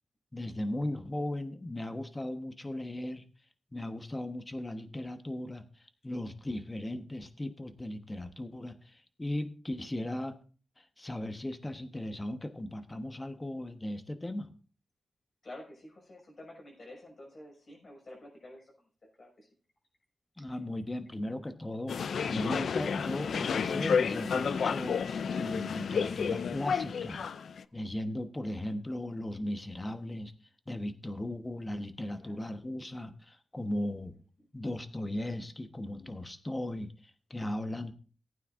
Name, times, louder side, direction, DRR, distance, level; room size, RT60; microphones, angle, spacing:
voice 1, 0.3-3.2 3.7-5.6 6.0-10.3 10.8-14.5 20.4-27.2 27.7-30.3 30.7-34.1 34.5-37.9, left 1 dB, 20° left, 8 dB, 1.2 m, -37 dB
voice 2, 15.4-18.7 19.2-19.5 26.0-26.1 28.0-28.2 32.2-32.3 37.6-37.8, left 1 dB, 45° left, 1 dB, 6.1 m, -50 dB
sound 1, 21.9-27.6, left 6 dB, 80° left, 0.4 m, -31 dB
18.5 x 9.2 x 2.6 m, 0.39 s
wide cardioid pair, 90°, 0 cm